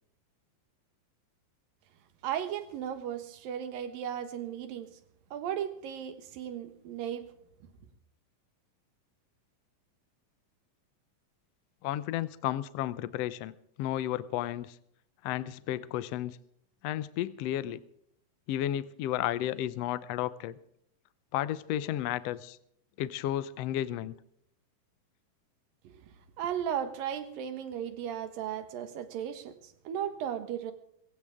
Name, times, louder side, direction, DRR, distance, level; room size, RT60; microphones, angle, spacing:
voice 1, 2.2-4.9 5.3-7.3 25.8-26.0 26.4-30.7, right 9 dB, 80° right, 9 dB, 3.1 m, -36 dB
voice 2, 11.8-14.7 15.2-16.4 16.8-17.8 18.5-20.6 21.3-22.6 23.0-24.1, left 12 dB, 90° left, 15 dB, 1.4 m, -33 dB
22.0 x 16.5 x 3.6 m, 0.72 s
omnidirectional pair, 4.0 m